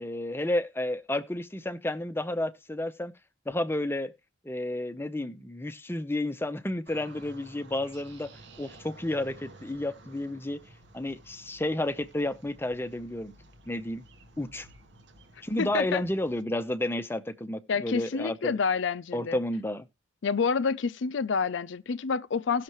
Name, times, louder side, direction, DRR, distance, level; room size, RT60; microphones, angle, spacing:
voice 1, 0.0-3.1 3.5-4.1 4.4-8.3 8.6-10.6 10.9-13.3 13.7-14.0 14.4-14.7 15.4-18.6 19.1-19.9, left 1 dB, 10° left, 0.7 m, -31 dB
sound 1, 6.9-16.4, right 2 dB, 65° right, 1.3 m, -53 dB
voice 2, 15.6-16.0 17.7-19.4 20.2-22.6, left 5 dB, 70° left, 0.5 m, -28 dB
17.5 x 6.6 x 3.1 m
head